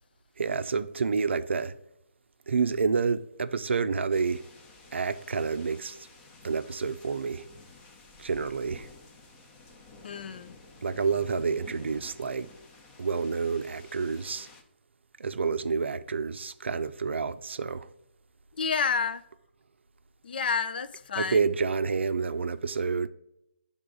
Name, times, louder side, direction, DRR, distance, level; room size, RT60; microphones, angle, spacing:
voice 1, 0.4-1.7 2.5-4.4 4.9-6.1 6.4-7.4 8.2-8.9 10.8-12.5 13.0-14.5 15.2-17.9 21.2-23.1, right 5 dB, 75° right, 0.5 m, -29 dB
sound 1, 4.1-14.6, left 3 dB, 25° left, 0.8 m, -52 dB
voice 2, 10.0-10.5 18.6-19.2 20.2-21.5, left 5 dB, 50° left, 0.5 m, -29 dB
10.5 x 3.6 x 3.9 m
hypercardioid pair, 155°, 6 cm